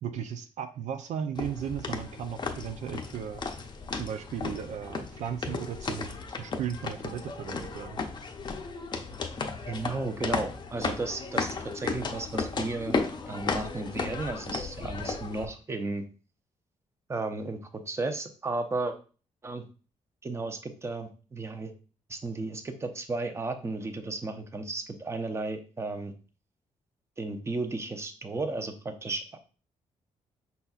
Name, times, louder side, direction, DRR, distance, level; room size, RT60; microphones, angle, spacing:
voice 1, 0.0-3.4 4.0-8.0, right 8 dB, 75° right, 7 dB, 0.5 m, -36 dB
sound 1, 1.3-15.4, left 4 dB, 35° left, 0.6 m, -34 dB
voice 2, 9.7-13.0 13.3-16.0 17.1-18.9 19.4-19.6 20.2-21.7 22.1-26.1 27.2-29.4, right 3 dB, 20° right, 7 dB, 0.6 m, -34 dB
5.6 x 4.0 x 2.4 m, 0.36 s
cardioid pair, 120°, 12 cm